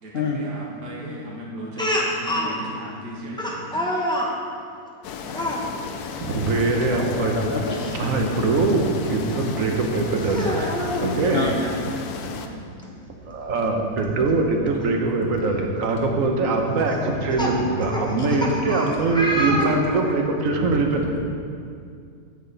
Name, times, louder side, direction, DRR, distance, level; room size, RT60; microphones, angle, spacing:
voice 1, 0.0-4.0 10.4-12.7, equal, 85° right, -3 dB, 2.1 m, -35 dB
Speech, 1.8-2.5 3.4-4.3 5.3-5.6 6.9-7.1 7.5-7.6 9.3-9.4 10.2-11.1 12.4-12.5 12.8-12.9 14.8-14.9 15.5-15.8 16.9-20.2, equal, 5° left, 0.6 m, -27 dB
sound 1, 5.0-12.5, left 5 dB, 75° left, 1.1 m, -34 dB
voice 2, 6.2-7.5 7.9-10.5 11.0-11.4 13.2-21.2, right 3 dB, 60° right, 2 dB, 1.3 m, -22 dB
voice 3, 7.2-8.0 11.3-11.5 19.5-19.7, left 4 dB, 50° left, -1 dB, 0.8 m, -27 dB
9.8 x 7.9 x 4.0 m, 2.3 s
omnidirectional pair, 1.7 m